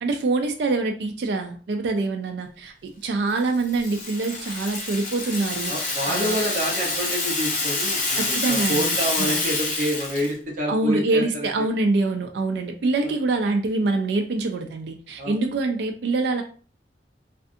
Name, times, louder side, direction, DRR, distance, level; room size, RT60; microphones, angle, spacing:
voice 1, 0.0-6.4 8.2-8.8 9.2-9.4 10.7-16.4, right 3 dB, 70° right, 4 dB, 0.3 m, -25 dB
Rattle (instrument), 3.4-10.3, left 3 dB, 45° left, 0.7 m, -27 dB
voice 2, 5.7-11.7 13.0-13.1 15.2-15.4, equal, 45° right, -1 dB, 0.7 m, -28 dB
2.5 x 2.4 x 2.5 m, 0.41 s
head